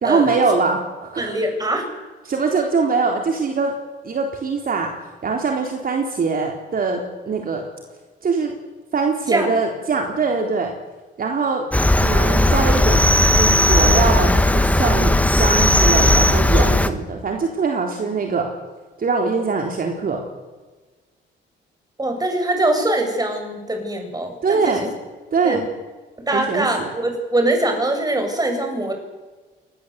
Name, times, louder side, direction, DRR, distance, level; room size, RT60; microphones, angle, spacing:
voice 1, 0.0-1.4 2.3-3.7 4.0-4.9 5.2-7.6 8.2-8.5 8.9-10.7 11.2-11.6 12.0-13.1 13.3-18.5 19.0-20.2 24.4-24.9 25.3-25.7 26.3-26.9, right 4 dB, 45° right, 2 dB, 3.8 m, -22 dB
voice 2, 1.2-1.9 9.3-9.5 22.0-24.9 25.4-25.6 26.3-28.9, right 1 dB, 20° right, 5 dB, 7.9 m, -22 dB
Cricket, 11.7-16.9, left 1 dB, 5° left, 1.8 m, -16 dB
26.5 x 20.5 x 8.3 m, 1.3 s
cardioid pair, 90°, 20 cm